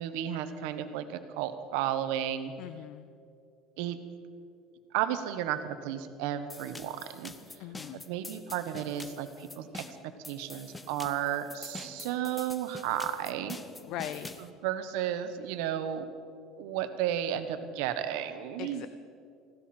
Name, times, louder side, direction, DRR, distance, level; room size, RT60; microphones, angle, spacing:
voice 1, 0.0-2.5 3.8-4.0 4.9-7.3 8.0-9.8 10.3-13.6 14.4-16.0 16.6-18.9, right 10 dB, 80° right, 9 dB, 1.1 m, -33 dB
voice 2, 2.6-3.1 7.6-8.0 13.9-14.3 18.6-18.9, left 12 dB, 60° left, 12 dB, 0.5 m, -40 dB
sound 1, 6.5-14.5, left 3 dB, 10° left, 0.7 m, -46 dB
20.0 x 16.0 x 4.4 m, 2.5 s
cardioid pair, 155°, 0 cm